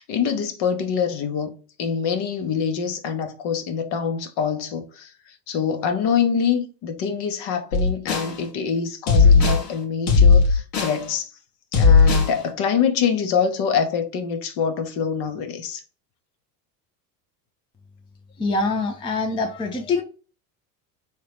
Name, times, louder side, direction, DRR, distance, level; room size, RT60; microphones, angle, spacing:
voice 1, 0.0-1.5 1.8-11.3 11.7-15.8, left 7 dB, 55° left, 0.9 m, -25 dB
sound 1, 7.7-8.3 9.1-9.7 10.1-11.0 11.7-12.3, left 5 dB, 85° left, 1.3 m, -16 dB
voice 2, 18.4-20.0, left 3 dB, 10° left, 0.5 m, -24 dB
3.6 x 3.0 x 3.4 m
supercardioid pair, 95°, 49 cm